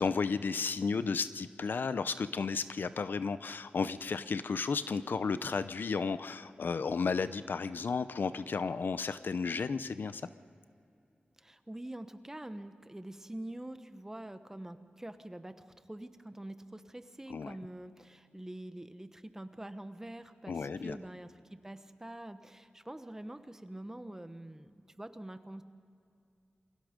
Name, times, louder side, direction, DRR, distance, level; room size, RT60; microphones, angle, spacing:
voice 1, 0.0-10.2 17.3-17.6 20.5-21.0, left 5 dB, 75° left, 13 dB, 0.7 m, -33 dB
voice 2, 11.4-25.6, right 1 dB, 15° right, 9 dB, 1.1 m, -45 dB
28.5 x 23.5 x 5.2 m, 2.5 s
wide cardioid pair, 110°, 3 cm